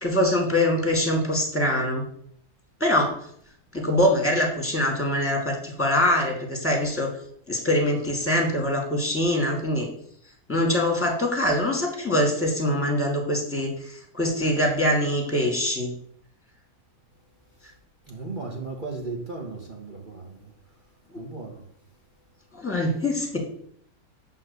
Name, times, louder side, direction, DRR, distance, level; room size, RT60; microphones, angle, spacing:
voice 1, 0.0-2.0 2.8-3.1 3.7-7.2 7.5-9.9 10.5-15.9 21.1-21.2 22.5-23.4, left 1 dB, 10° left, 2.1 m, -23 dB
voice 2, 18.1-20.5 21.2-21.6, right 3 dB, 35° right, 1.4 m, -36 dB
8.8 x 3.9 x 6.8 m
omnidirectional pair, 1.6 m